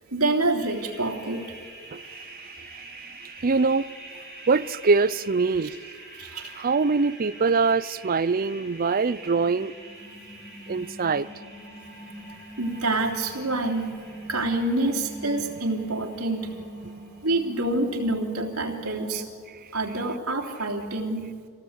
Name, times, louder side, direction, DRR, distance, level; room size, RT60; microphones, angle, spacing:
voice 1, 0.1-1.5 6.2-6.5 12.6-13.9 14.3-16.5 17.2-19.2 19.7-21.3, right 2 dB, 85° right, 3.3 m, -27 dB
sound 1, 0.6-19.3, right 1 dB, 15° left, 7.2 m, -44 dB
voice 2, 1.9-5.9 6.6-9.7 10.7-11.3, right 4 dB, 40° right, 0.5 m, -24 dB
26.5 x 17.5 x 8.2 m
head